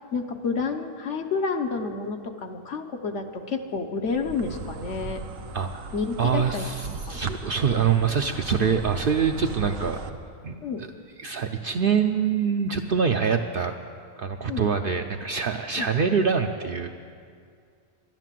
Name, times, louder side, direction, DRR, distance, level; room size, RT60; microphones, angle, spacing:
voice 1, 0.1-5.2 5.9-6.7 7.1-7.3 10.6-10.8 14.5-14.6 15.8-15.9, left 4 dB, 60° left, 5 dB, 1.2 m, -30 dB
Insect, 4.1-10.1, right 4 dB, 90° right, 1.3 m, -37 dB
voice 2, 5.5-5.9 6.2-10.2 10.4-10.9 11.2-13.7 14.2-16.9, right 6 dB, 55° right, 5 dB, 0.7 m, -25 dB
12.5 x 11.5 x 7.5 m, 2.2 s
omnidirectional pair, 1.4 m